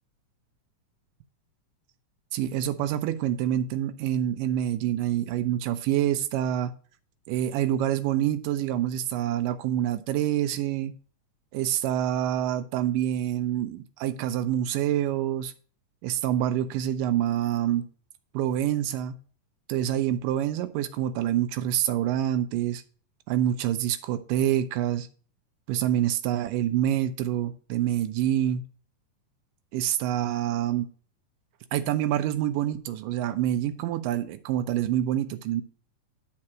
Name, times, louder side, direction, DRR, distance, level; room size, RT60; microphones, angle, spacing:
voice 1, 2.3-6.7 7.3-10.9 11.5-15.5 16.0-17.9 18.3-19.2 19.7-22.8 23.3-25.1 25.7-28.6 29.7-30.9 31.7-35.6, right 11 dB, 85° right, 9 dB, 2.3 m, -26 dB
10.5 x 4.3 x 6.0 m, 0.41 s
omnidirectional pair, 3.8 m